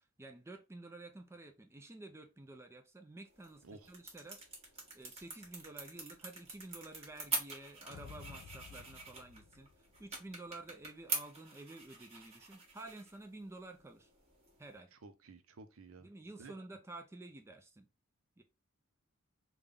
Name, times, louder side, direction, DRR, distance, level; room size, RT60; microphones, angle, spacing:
voice 1, 0.0-4.4 4.9-14.1 14.6-14.9 16.0-17.9 18.4-18.5, right 2 dB, 10° right, 0.4 m, -51 dB
sound 1, 3.2-14.8, right 3 dB, 30° right, 1.2 m, -45 dB
sound 2, 7.9-10.4, left 7 dB, 70° left, 0.3 m, -54 dB
voice 2, 14.9-16.1 16.4-16.5, right 3 dB, 70° right, 0.6 m, -53 dB
3.5 x 2.3 x 3.6 m
head